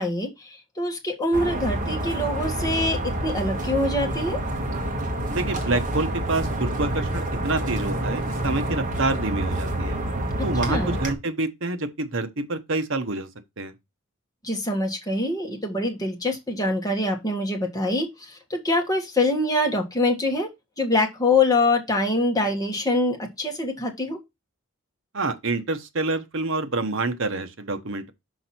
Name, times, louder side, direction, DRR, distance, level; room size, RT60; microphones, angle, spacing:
voice 1, 0.0-4.4 10.7-11.0 14.4-20.5 20.8-24.2, left 2 dB, 15° left, 1.6 m, -24 dB
sound 1, 1.3-11.1, right 1 dB, 35° right, 1.5 m, -28 dB
voice 2, 5.3-10.0 10.4-13.3 13.6-13.7 25.1-28.1, right 2 dB, 60° right, 1.0 m, -27 dB
6.3 x 5.2 x 4.3 m
head